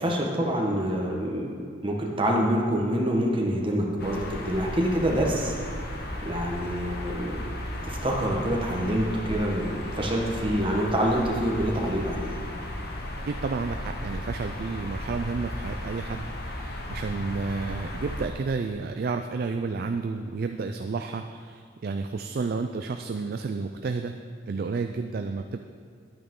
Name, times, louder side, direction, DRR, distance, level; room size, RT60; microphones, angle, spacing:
voice 1, 0.0-1.5 1.8-5.5 6.2-7.4 7.8-12.3, equal, 25° right, -1 dB, 1.2 m, -26 dB
sound 1, 4.0-18.3, left 1 dB, 55° left, 1.0 m, -35 dB
voice 2, 13.3-24.1 24.5-25.6, right 4 dB, 50° right, 6 dB, 0.3 m, -31 dB
11.0 x 8.6 x 3.7 m, 2.2 s
head